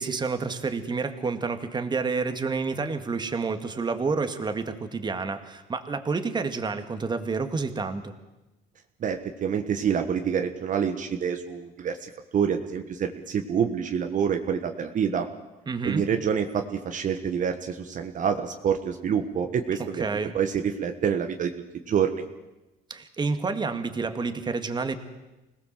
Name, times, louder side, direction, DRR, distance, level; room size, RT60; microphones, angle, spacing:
voice 1, 0.0-8.2 15.7-16.1 20.0-20.4 22.9-24.9, right 4 dB, 25° right, 8 dB, 2.0 m, -29 dB
voice 2, 9.0-15.3 15.8-21.5 21.9-22.2, right 7 dB, 50° right, 5 dB, 1.5 m, -27 dB
25.5 x 18.5 x 7.6 m, 1.0 s
cardioid pair, 110°, 17 cm